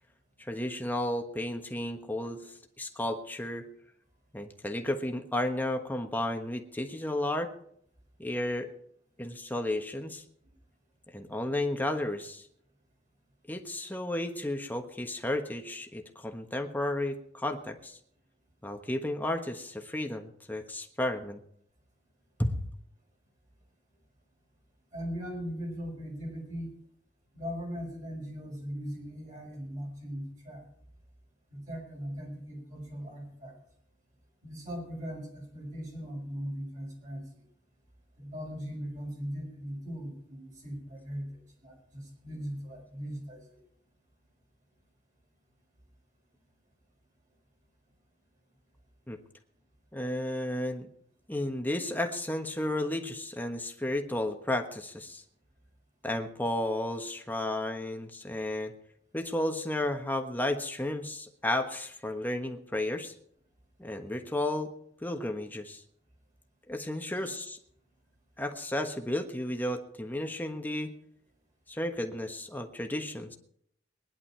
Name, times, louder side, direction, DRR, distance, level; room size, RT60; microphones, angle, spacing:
voice 1, 0.4-2.4 2.8-3.7 4.3-7.5 8.2-8.7 9.2-10.2 11.1-12.4 13.5-18.0 18.6-21.4 22.4-22.6 49.1-49.2 49.9-50.9 51.3-55.2 56.0-58.7 59.1-63.1 63.8-64.7 65.0-65.8 66.7-67.6 68.4-70.9 71.7-73.4, left 1 dB, 10° left, 4 dB, 1.3 m, -33 dB
voice 2, 24.9-26.7 27.3-30.6 31.5-33.5 34.4-37.2 38.2-41.3 41.6-43.4, equal, 45° right, -2 dB, 5.7 m, -39 dB
20.5 x 11.0 x 4.6 m, 0.68 s
head